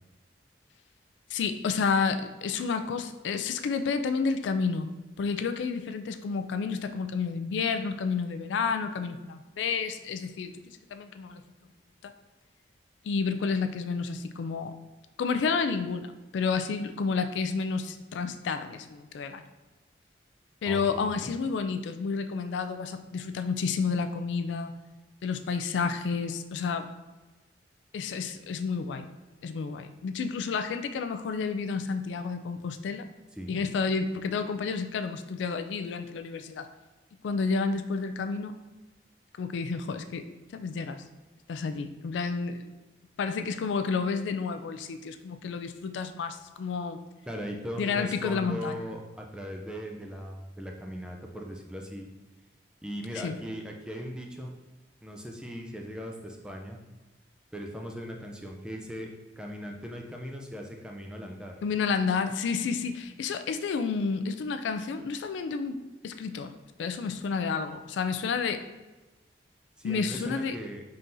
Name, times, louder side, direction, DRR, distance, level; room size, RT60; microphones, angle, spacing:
voice 1, 1.3-4.9 5.2-11.4 12.0-12.1 13.0-14.7 15.2-19.4 20.6-24.7 25.2-26.9 27.9-29.1 29.4-33.0 33.5-36.7 37.2-38.5 39.4-40.2 40.5-41.0 41.5-42.7 43.2-47.0 47.8-48.8 53.1-53.4 61.6-65.8 66.0-66.5 66.8-68.6 69.8-70.6, left 5 dB, 85° left, 8 dB, 0.3 m, -30 dB
voice 2, 20.7-21.3 33.4-33.6 47.3-52.1 52.8-54.5 55.0-56.8 57.5-61.5 69.8-70.8, equal, 5° right, 1 dB, 0.4 m, -39 dB
4.2 x 3.7 x 2.6 m, 1.2 s
head